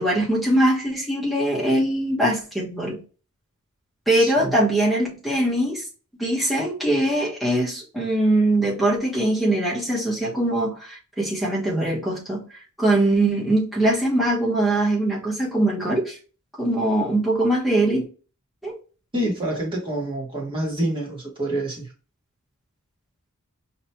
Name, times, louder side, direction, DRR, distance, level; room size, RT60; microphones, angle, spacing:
voice 1, 0.0-3.0 4.1-5.8 6.2-12.4 12.8-16.2 16.6-18.0 18.6-18.7, right 1 dB, ahead, -5 dB, 1.2 m, -22 dB
voice 2, 4.2-4.5 19.1-21.9, right 1 dB, 20° right, -3 dB, 1.4 m, -27 dB
5.0 x 2.9 x 2.2 m, 0.36 s
head